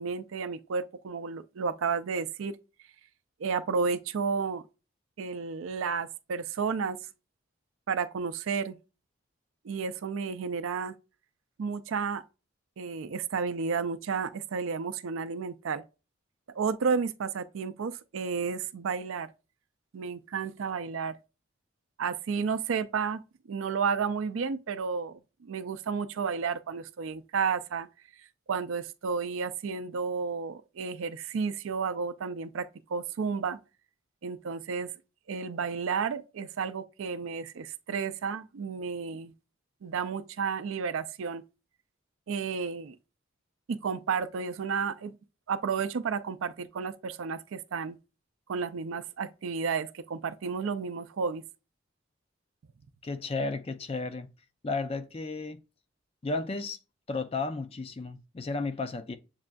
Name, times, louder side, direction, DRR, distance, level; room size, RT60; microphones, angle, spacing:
voice 1, 0.0-2.6 3.4-4.6 5.2-7.0 7.9-8.8 9.6-10.9 11.6-12.2 12.8-15.8 16.6-19.3 19.9-21.2 22.0-23.2 23.5-27.9 28.5-33.6 34.2-34.9 35.3-39.3 39.8-41.4 42.3-43.0 43.7-45.1 45.5-48.0 48.5-51.4, right 5 dB, 75° right, 0.4 m, -32 dB
voice 2, 53.0-54.3 54.6-55.6 56.2-56.8 57.1-59.2, left 3 dB, 30° left, 0.4 m, -33 dB
7.3 x 2.5 x 2.2 m
head